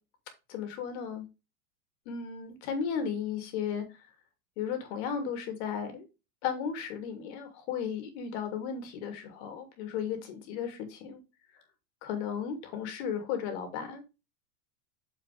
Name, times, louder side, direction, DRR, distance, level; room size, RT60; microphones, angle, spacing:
voice 1, 0.5-1.2 2.1-3.8 4.6-6.1 6.4-11.2 12.0-14.0, left 7 dB, 50° left, 2.7 m, -35 dB
7.0 x 5.8 x 3.5 m
supercardioid pair, 155°, 43 cm